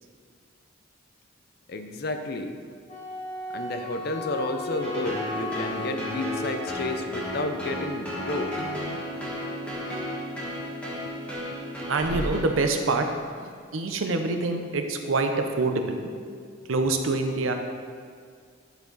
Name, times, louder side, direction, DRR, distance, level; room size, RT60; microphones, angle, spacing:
voice 1, 1.7-2.5 3.5-9.0, left 2 dB, 50° left, 6 dB, 0.5 m, -32 dB
Wind instrument woodwind instrument, 2.9-7.1, left 2 dB, 35° left, 2.1 m, -36 dB
sound 1, 4.8-12.9, equal, 5° left, 1.4 m, -33 dB
voice 2, 11.9-13.1 13.7-16.1 16.6-17.5, right 3 dB, 85° right, 5 dB, 0.7 m, -25 dB
10.5 x 4.5 x 4.0 m, 2.1 s
head